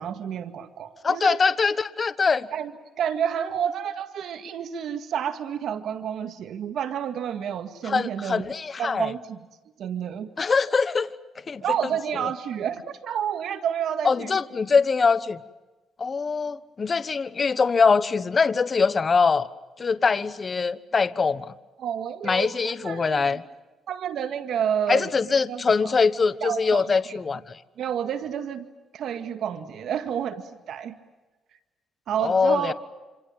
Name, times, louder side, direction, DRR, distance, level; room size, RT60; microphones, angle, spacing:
voice 1, 0.0-1.4 2.5-2.7 3.0-8.5 8.8-9.4 9.8-10.3 11.6-14.3 21.8-23.4 23.9-25.1 25.5-25.9 26.4-27.2 27.8-28.7 28.9-30.9 32.1-32.7, right 8 dB, 70° right, 9 dB, 2.0 m, -30 dB
voice 2, 1.0-2.5 7.8-9.1 10.4-11.1 11.5-11.6 14.0-15.4 16.0-19.5 19.8-21.5 22.2-23.4 24.9-27.6 32.2-32.7, left 5 dB, 35° left, 14 dB, 1.1 m, -23 dB
27.5 x 26.5 x 7.5 m, 1.2 s
cardioid pair, 90°, 0 cm